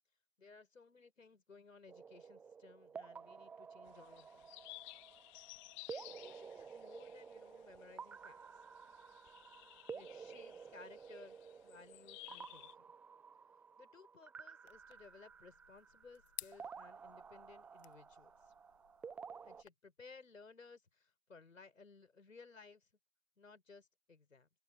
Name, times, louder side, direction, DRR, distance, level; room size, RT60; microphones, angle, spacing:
voice 1, 0.4-4.5 5.9-8.4 9.9-11.4 11.6-12.7 13.8-18.5 19.4-22.9 23.4-24.5, left 4 dB, 80° left, 4.9 m, -59 dB
sound 1, 1.9-19.6, right 6 dB, 5° right, 0.4 m, -53 dB
sound 2, 3.9-12.7, left 22 dB, 30° left, 2.9 m, -57 dB
sound 3, 14.7-19.7, left 11 dB, 55° left, 1.7 m, -56 dB
open air
figure-of-eight pair, 115°, 39 cm